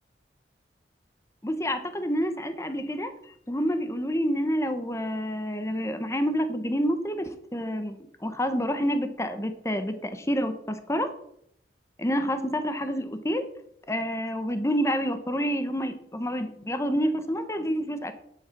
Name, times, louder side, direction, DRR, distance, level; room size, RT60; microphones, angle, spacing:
voice 1, 1.4-3.1 3.5-11.1 12.0-13.5 13.9-18.1, equal, 15° left, 9 dB, 0.9 m, -28 dB
10.0 x 6.4 x 5.8 m, 0.72 s
head